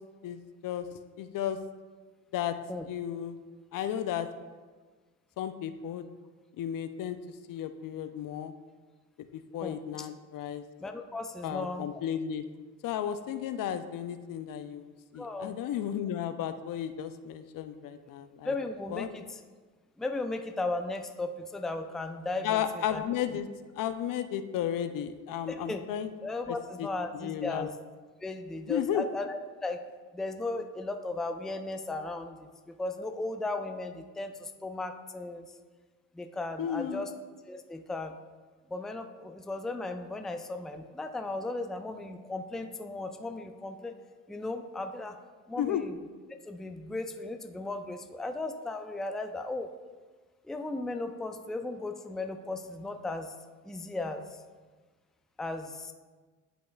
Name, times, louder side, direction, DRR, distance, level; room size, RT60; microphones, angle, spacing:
voice 1, 0.2-0.9 1.2-1.6 2.3-2.6 2.9-3.4 3.7-4.3 5.4-6.0 6.6-7.2 7.5-8.5 9.3-10.6 11.4-12.4 12.8-18.5 18.9-19.1 22.4-23.5 23.8-26.1 26.5-26.9 27.1-27.7 28.7-29.0 36.6-37.2 45.6-45.8, left 10 dB, 55° left, 10 dB, 0.6 m, -33 dB
voice 2, 9.6-10.1 10.8-11.9 15.1-15.5 18.4-19.4 20.0-22.6 22.9-23.0 23.3-23.4 25.5-25.8 26.2-27.7 28.2-29.8 30.1-35.4 36.1-37.1 37.5-38.2 38.7-43.9 44.3-45.2 45.5-46.0 46.4-49.7 50.4-53.3 53.6-54.4 55.4-55.9, left 2 dB, ahead, 6 dB, 0.4 m, -36 dB
11.0 x 5.0 x 2.3 m, 1.4 s
hypercardioid pair, 65°, 39 cm